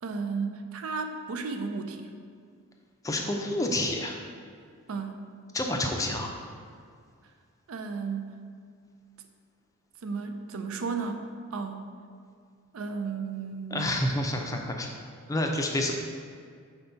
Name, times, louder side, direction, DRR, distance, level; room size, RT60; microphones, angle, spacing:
voice 1, 0.0-2.1 4.9-5.2 7.7-8.3 10.0-11.2 11.5-11.9 12.7-13.8, right 4 dB, 70° right, 6 dB, 0.5 m, -33 dB
voice 2, 3.0-4.2 5.5-6.3 13.7-14.9 15.3-15.9, left 1 dB, 15° left, 2 dB, 0.4 m, -28 dB
4.4 x 3.9 x 5.6 m, 2.1 s
head